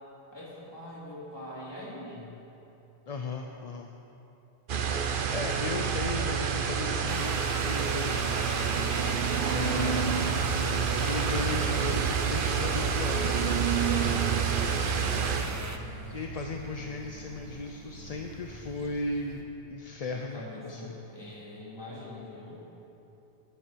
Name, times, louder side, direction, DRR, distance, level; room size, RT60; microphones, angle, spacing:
voice 1, 0.3-2.4 14.8-15.3 20.1-22.6, left 1 dB, 25° left, -8 dB, 3.4 m, -43 dB
voice 2, 3.1-3.9 4.8-8.4 9.5-10.4 10.9-13.5 16.1-19.4 19.7-21.0, left 3 dB, 45° left, 3 dB, 0.6 m, -36 dB
sound 1, 4.7-15.7, right 6 dB, 60° right, 0.9 m, -29 dB
sound 2, 5.6-19.4, right 5 dB, 80° right, 1.4 m, -36 dB
sound 3, 7.1-15.8, right 2 dB, 20° right, 0.5 m, -39 dB
15.0 x 10.5 x 4.6 m, 2.9 s
omnidirectional pair, 1.0 m